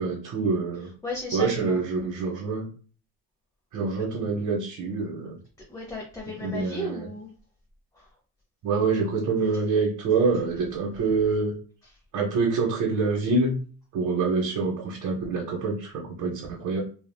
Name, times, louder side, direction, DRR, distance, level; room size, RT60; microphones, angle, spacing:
voice 1, 0.0-0.9 1.3-2.7 3.7-5.4 6.4-7.1 8.6-11.5 12.1-13.5 13.9-16.8, right 4 dB, 55° right, -3 dB, 0.9 m, -26 dB
voice 2, 1.0-1.8 5.7-7.3 7.9-8.1 9.4-9.6 11.2-11.3, left 1 dB, 10° left, -2 dB, 0.6 m, -35 dB
3.3 x 2.4 x 2.2 m, 0.40 s
cardioid pair, 125°, 37 cm